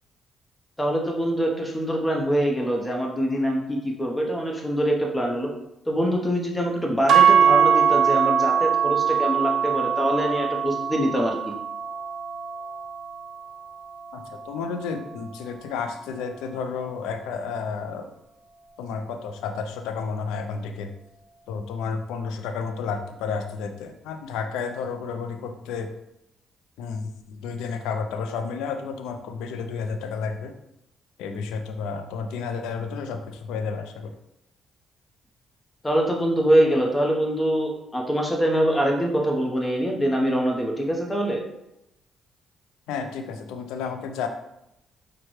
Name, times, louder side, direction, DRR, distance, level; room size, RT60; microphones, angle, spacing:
voice 1, 0.8-5.5 5.9-11.4 35.8-41.4, equal, 15° left, 0 dB, 0.9 m, -24 dB
sound 1, 7.1-15.3, right 7 dB, 65° right, 0.4 m, -23 dB
voice 2, 14.1-18.1 18.8-20.9 21.5-25.9 26.8-30.5 31.2-34.1 42.9-44.3, left 5 dB, 85° left, 6 dB, 0.4 m, -31 dB
5.8 x 2.2 x 3.1 m, 0.86 s
supercardioid pair, 60°, 0 cm